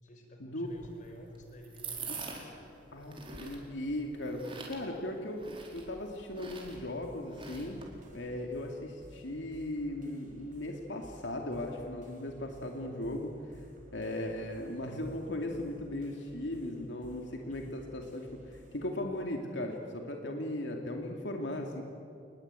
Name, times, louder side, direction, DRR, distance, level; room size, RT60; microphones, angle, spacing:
voice 1, 0.0-2.5 17.5-17.8, left 1 dB, 45° left, 4 dB, 4.6 m, -52 dB
sound 1, 0.6-8.1, right 4 dB, 30° right, 4.5 m, -46 dB
voice 2, 2.9-5.4 5.7-7.8 8.1-13.4 13.9-21.8, left 1 dB, 85° left, 2 dB, 2.5 m, -37 dB
sound 2, 7.0-19.0, right 1 dB, 45° right, 5.3 m, -56 dB
28.0 x 21.0 x 9.0 m, 2.7 s
head